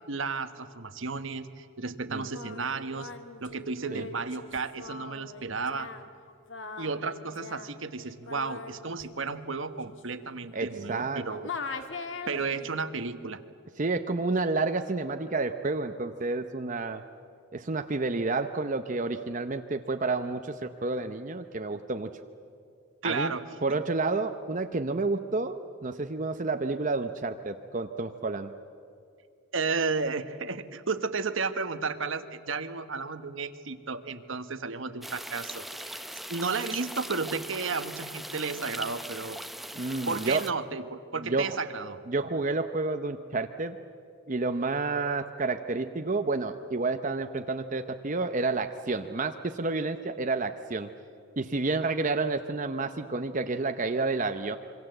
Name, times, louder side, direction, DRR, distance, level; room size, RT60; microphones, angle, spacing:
voice 1, 0.1-3.1 3.4-5.9 6.8-11.4 12.3-13.4 23.0-23.4 29.5-36.0 36.3-39.4 40.1-42.0, right 4 dB, 65° right, 11 dB, 1.2 m, -33 dB
Singing, 2.1-11.1 11.4-12.8, left 4 dB, 60° left, 1.7 m, -42 dB
voice 2, 10.5-11.2 13.8-17.0 17.5-22.1 23.0-23.3 23.6-28.5 39.7-40.4 41.2-41.6 42.1-43.8 44.3-50.9 51.4-54.6, right 3 dB, 35° right, 7 dB, 0.7 m, -30 dB
sound 1, 35.0-40.5, equal, ahead, 0.6 m, -40 dB
26.5 x 24.5 x 7.9 m, 2.4 s
head